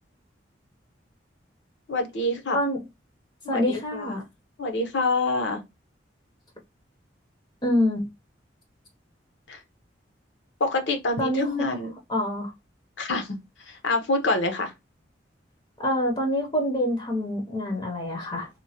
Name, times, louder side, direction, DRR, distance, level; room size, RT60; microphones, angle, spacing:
voice 1, 1.9-2.6 3.4-4.2 4.6-5.6 9.5-9.6 10.6-11.9 13.0-13.4 13.7-14.7, left 2 dB, 80° left, 0.7 m, -26 dB
voice 2, 3.5-4.2 7.6-8.0 11.2-11.5 12.1-12.5 15.8-18.5, left 1 dB, 25° left, 0.5 m, -26 dB
2.9 x 2.1 x 2.7 m
head